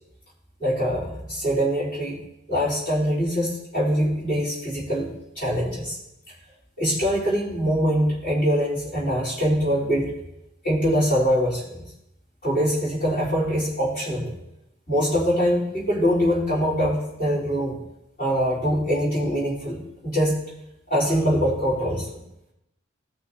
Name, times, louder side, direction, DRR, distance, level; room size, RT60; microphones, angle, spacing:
voice 1, 0.6-2.2 2.5-5.1 5.4-6.0 6.8-10.1 10.6-11.8 12.4-14.3 14.9-17.8 18.2-20.4 20.9-22.1, equal, 40° left, -9 dB, 3.8 m, -23 dB
16.5 x 6.3 x 2.8 m, 0.86 s
head